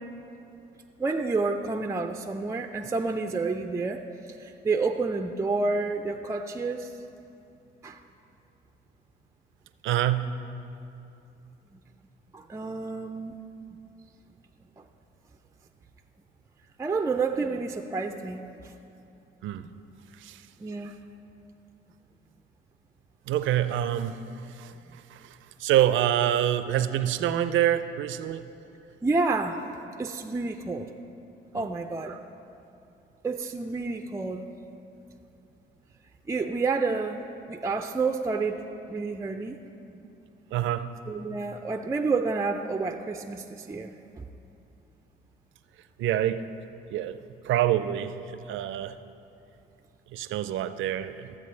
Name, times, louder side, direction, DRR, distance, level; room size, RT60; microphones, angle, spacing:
voice 1, 1.0-4.0 4.3-6.9 7.8-8.0 12.3-13.4 16.8-18.4 19.6-19.7 20.6-21.0 29.0-29.6 30.0-30.9 31.5-32.2 33.2-34.4 36.3-37.2 37.5-39.6 39.8-40.0 41.1-44.2, right 3 dB, 15° right, 5 dB, 0.3 m, -29 dB
voice 2, 9.8-10.3 19.4-19.6 20.2-20.4 23.3-24.2 24.6-24.7 25.1-25.2 25.6-28.4 31.5-31.7 40.5-40.9 46.0-46.4 46.9-47.2 47.4-48.1 48.5-49.0 50.1-51.3, right 11 dB, 75° right, 12 dB, 0.4 m, -26 dB
13.5 x 7.5 x 3.2 m, 2.8 s
cardioid pair, 90°, 20 cm